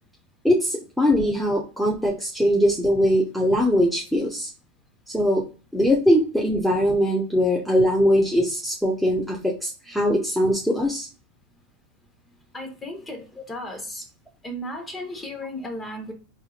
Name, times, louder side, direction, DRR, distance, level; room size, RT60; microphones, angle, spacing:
voice 1, 0.4-4.5 5.1-5.4 5.7-11.1, equal, ahead, -3 dB, 0.7 m, -21 dB
voice 2, 12.5-14.0 14.4-16.1, left 1 dB, 15° left, 3 dB, 1.2 m, -35 dB
4.4 x 2.6 x 2.5 m, 0.35 s
supercardioid pair, 115°, 0 cm